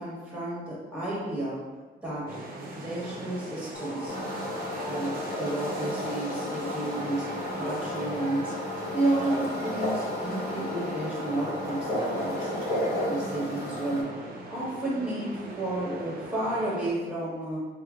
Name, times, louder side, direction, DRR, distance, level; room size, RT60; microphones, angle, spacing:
voice 1, 0.0-1.6 2.0-2.2 2.7-4.1 4.8-7.3 7.6-8.5 8.9-12.5 13.0-14.0 14.5-17.6, right 1 dB, 5° right, -8 dB, 1.4 m, -31 dB
sound 1, 2.3-16.9, right 2 dB, 45° right, 0.5 m, -40 dB
sound 2, 3.7-13.2, left 3 dB, 75° left, 0.6 m, -38 dB
sound 3, 4.1-14.0, equal, 55° left, 1.0 m, -34 dB
3.2 x 2.1 x 2.4 m, 1.4 s
cardioid pair, 90°, 20 cm